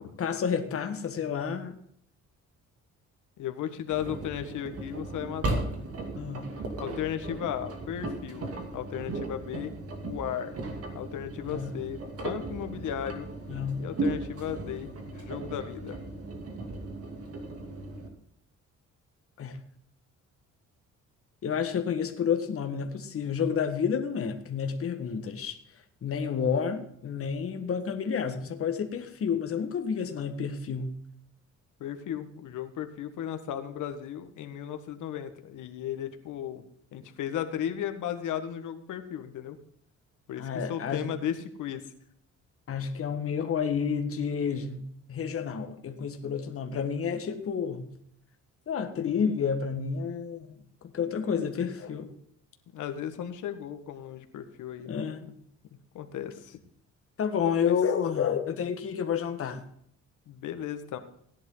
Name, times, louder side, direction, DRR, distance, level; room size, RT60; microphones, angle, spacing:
voice 1, 0.2-1.8 6.1-6.5 11.4-11.7 13.5-13.8 19.4-19.6 21.4-25.6 26.0-31.0 40.4-41.1 42.7-47.9 48.7-50.5 50.8-52.1 54.9-55.3 57.2-59.6, left 7 dB, 45° left, 6 dB, 1.7 m, -30 dB
voice 2, 3.4-5.7 6.8-9.7 10.0-10.5 10.9-13.3 13.8-16.0 31.8-36.6 36.9-39.6 40.3-41.9 51.3-51.4 52.7-55.1 55.7-56.6 57.6-57.8 60.3-61.0, left 10 dB, 75° left, 8 dB, 1.6 m, -35 dB
Engine, 3.9-18.1, right 2 dB, 50° right, 2.7 m, -36 dB
17.0 x 10.5 x 3.9 m, 0.68 s
cardioid pair, 130°, 31 cm